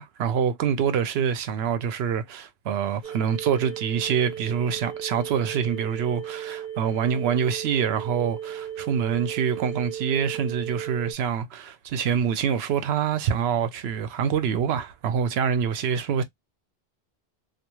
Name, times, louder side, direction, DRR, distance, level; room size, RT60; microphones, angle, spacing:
voice 1, 0.0-16.2, right 7 dB, 80° right, 0.8 m, -26 dB
sound 1, 3.0-11.1, right 9 dB, 20° right, 0.7 m, -36 dB
2.3 x 2.3 x 2.9 m
omnidirectional pair, 1.0 m